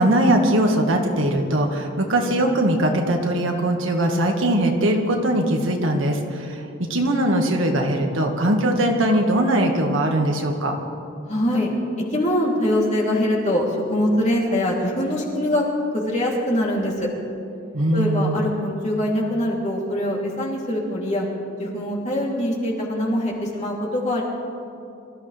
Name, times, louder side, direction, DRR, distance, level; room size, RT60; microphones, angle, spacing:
voice 1, 0.0-6.6 6.9-10.8 17.7-18.4, right 1 dB, 75° right, 2 dB, 1.8 m, -20 dB
voice 2, 11.3-11.7 12.1-15.6 15.9-17.1 17.9-21.2 21.6-24.2, left 1 dB, 35° left, -3 dB, 3.1 m, -23 dB
24.5 x 14.5 x 3.4 m, 2.6 s
head